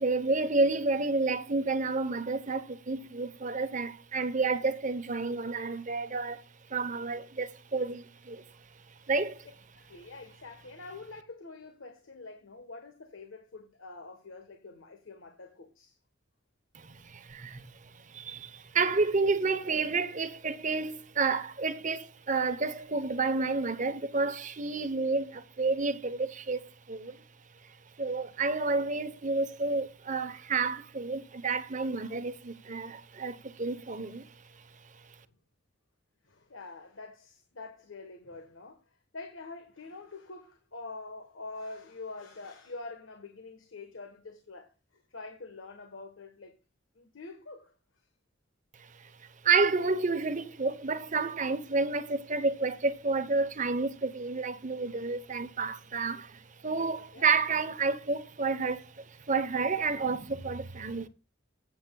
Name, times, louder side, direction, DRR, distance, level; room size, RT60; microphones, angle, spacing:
voice 1, 0.0-6.4 6.7-8.4 9.1-9.4 16.7-17.7 18.1-27.2 28.0-34.2 49.0-49.1 49.4-61.1, right 4 dB, 40° right, 0.9 m, -30 dB
voice 2, 9.7-16.0 36.2-38.8 39.1-46.5 46.9-47.7 56.9-57.3, left 3 dB, 90° left, 1.3 m, -46 dB
14.5 x 8.0 x 2.3 m
head